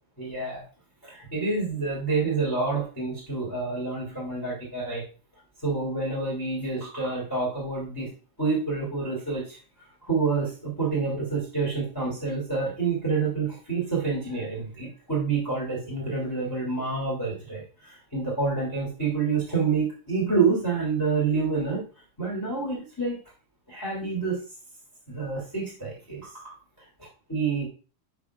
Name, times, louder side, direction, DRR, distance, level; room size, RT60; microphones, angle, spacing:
voice 1, 0.2-0.6 1.0-5.0 5.6-8.1 8.4-9.6 10.0-21.9 22.2-23.2 23.7-24.4 25.1-27.7, right 4 dB, 5° left, -5 dB, 2.0 m, -28 dB
11.5 x 4.8 x 2.4 m, 0.36 s
omnidirectional pair, 4.5 m